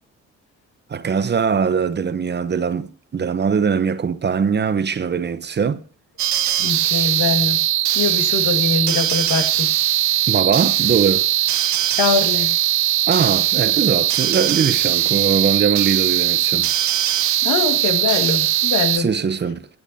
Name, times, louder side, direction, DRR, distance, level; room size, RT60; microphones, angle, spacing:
voice 1, 0.9-5.8 10.3-11.3 13.1-16.7 18.9-19.7, right 6 dB, 35° right, 0.8 m, -21 dB
sound 1, 6.2-19.0, right 13 dB, 65° right, 0.7 m, -20 dB
voice 2, 6.6-7.7 7.9-9.7 12.0-12.6 17.4-19.1, left 5 dB, 85° left, 1.8 m, -22 dB
23.0 x 8.0 x 2.7 m
cardioid pair, 90°, 30 cm